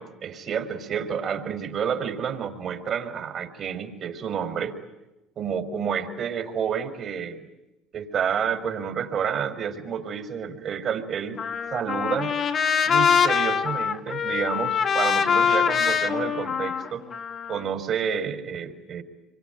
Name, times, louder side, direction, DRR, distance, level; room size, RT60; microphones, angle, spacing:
voice 1, 0.0-4.8 5.4-7.4 7.9-11.4 11.7-12.3 12.9-17.1 17.5-19.0, right 7 dB, 50° right, 9 dB, 4.7 m, -29 dB
Trumpet, 11.4-17.6, left 7 dB, 45° left, 2.3 m, -24 dB
27.0 x 24.0 x 9.3 m, 0.98 s
hypercardioid pair, 70°, 0 cm